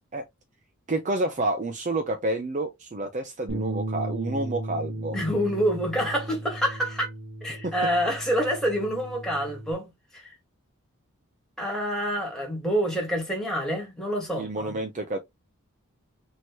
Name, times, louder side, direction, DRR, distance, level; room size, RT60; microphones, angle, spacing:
voice 1, 0.9-5.2 7.6-7.7 14.4-15.2, right 2 dB, 35° right, 0.5 m, -29 dB
Bass guitar, 3.5-9.7, right 1 dB, 50° right, 1.1 m, -35 dB
voice 2, 5.1-7.1 7.4-10.3 11.6-14.7, equal, ahead, 1.8 m, -27 dB
4.4 x 3.1 x 3.0 m
head